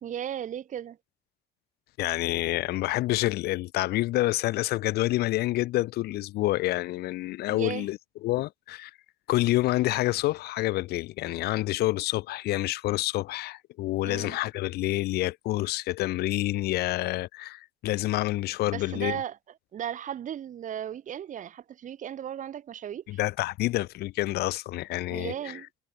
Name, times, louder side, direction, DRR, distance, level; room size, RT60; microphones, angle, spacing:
voice 1, 0.0-1.0 7.5-7.9 14.0-14.4 18.7-19.4 19.7-23.2 25.1-25.7, right 10 dB, 50° right, 1.3 m, -36 dB
voice 2, 2.0-8.9 9.3-19.2 23.1-25.6, left 17 dB, 70° left, 0.5 m, -28 dB
cardioid pair, 110°, 17 cm